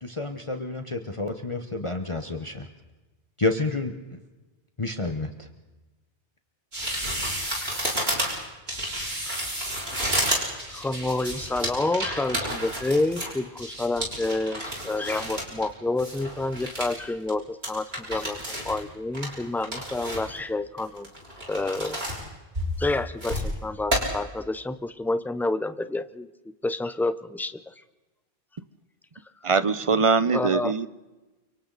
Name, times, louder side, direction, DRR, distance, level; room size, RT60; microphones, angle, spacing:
voice 1, 0.0-2.7 3.4-3.9 4.8-5.5, left 2 dB, 30° left, 5 dB, 1.2 m, -29 dB
sound 1, 6.7-15.7 16.0-17.0 17.3-17.4 17.6-18.8 19.1-20.4 20.8-22.2 22.5-23.5 23.9-24.0, equal, 65° right, 5.6 m, -31 dB
voice 2, 10.7-21.1 21.5-22.0 22.8-26.3 26.6-27.6 30.3-30.7, left 2 dB, ahead, 12 dB, 0.5 m, -29 dB
voice 3, 29.4-30.9, right 5 dB, 35° right, 14 dB, 0.7 m, -22 dB
29.5 x 24.5 x 4.1 m, 1.1 s
omnidirectional pair, 1.1 m